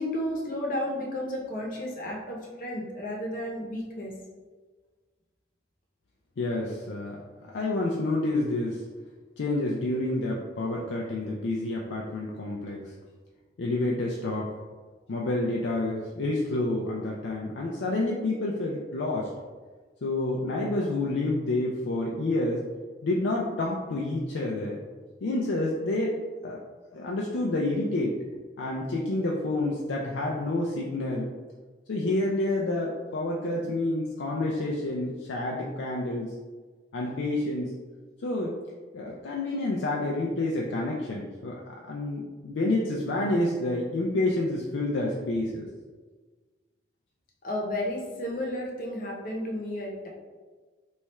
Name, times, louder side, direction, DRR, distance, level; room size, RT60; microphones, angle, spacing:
voice 1, 0.0-4.1 47.4-50.1, left 1 dB, 45° left, -2 dB, 0.7 m, -32 dB
voice 2, 6.4-7.2 7.5-8.8 9.4-12.9 13.6-14.5 15.1-19.3 20.0-22.6 23.0-24.8 25.2-26.6 26.9-28.1 28.6-31.3 31.9-36.3 36.9-37.7 38.2-38.6 38.9-45.7, left 2 dB, 85° left, -2 dB, 0.4 m, -29 dB
3.2 x 2.3 x 4.1 m, 1.4 s
head